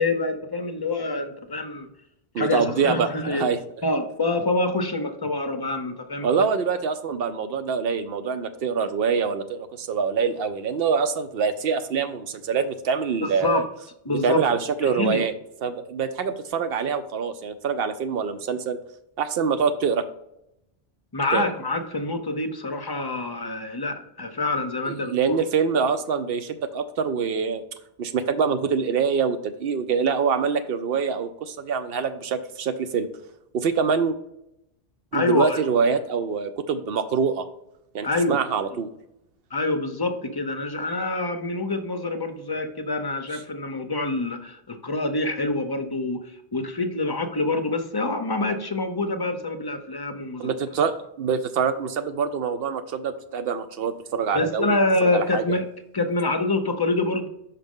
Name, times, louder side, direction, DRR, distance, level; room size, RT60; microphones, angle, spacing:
voice 1, 0.0-1.9 2.4-3.4 3.8-6.4 13.2-13.6 14.0-14.4 14.8-15.2 21.1-25.4 35.1-35.6 38.0-38.4 39.5-50.5 54.3-55.7 55.9-57.3, left 2 dB, 30° left, 6 dB, 0.5 m, -26 dB
voice 2, 2.3-3.6 6.2-13.6 14.1-15.3 15.6-18.8 19.2-20.0 21.3-21.4 24.9-27.6 28.0-33.1 33.5-34.2 35.1-37.5 37.9-38.9 50.4-55.4, right 6 dB, 70° right, 10 dB, 0.8 m, -25 dB
5.8 x 5.0 x 3.6 m, 0.82 s
omnidirectional pair, 1.0 m